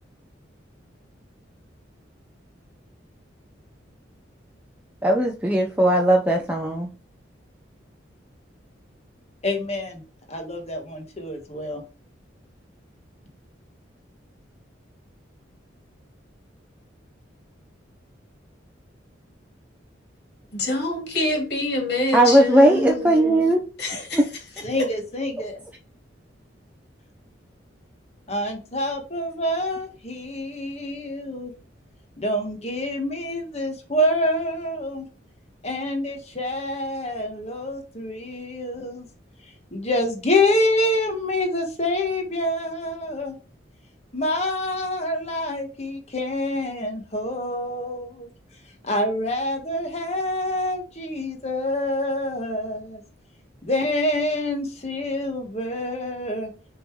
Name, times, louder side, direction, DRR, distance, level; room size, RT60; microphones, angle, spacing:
voice 1, 5.0-6.9 22.1-23.6 24.1-24.2, right 1 dB, 10° right, 0.7 m, -18 dB
voice 2, 9.4-10.0 10.3-11.8 24.6-25.6 28.3-31.5 32.2-35.0 35.6-39.0 39.7-43.3 44.1-48.3 48.8-53.0 53.6-56.5, left 1 dB, 35° left, 1.6 m, -26 dB
voice 3, 20.5-23.5 23.8-24.3, left 1 dB, 55° left, 3.4 m, -26 dB
6.7 x 3.9 x 4.8 m
head